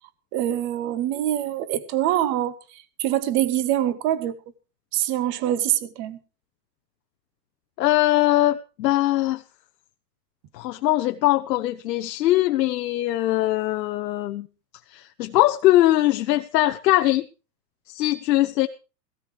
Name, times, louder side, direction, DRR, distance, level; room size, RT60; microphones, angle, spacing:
voice 1, 0.3-4.4 4.9-6.2, right 12 dB, 25° right, 0.7 m, -24 dB
voice 2, 7.8-9.4 10.5-14.5 14.9-17.3 17.9-18.7, left 15 dB, 75° left, 0.8 m, -21 dB
16.5 x 15.5 x 3.2 m
supercardioid pair, 155°, 49 cm